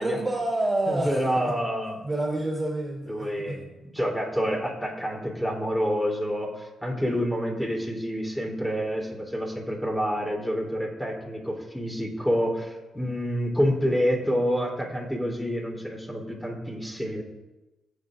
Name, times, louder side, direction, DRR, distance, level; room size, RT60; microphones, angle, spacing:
voice 1, 0.0-1.6 2.0-3.6, right 1 dB, 20° right, 0 dB, 2.7 m, -28 dB
voice 2, 0.9-2.0 3.1-17.2, equal, 5° left, -2 dB, 3.2 m, -28 dB
18.5 x 8.7 x 2.5 m, 1.1 s
cardioid pair, 80°, 0 cm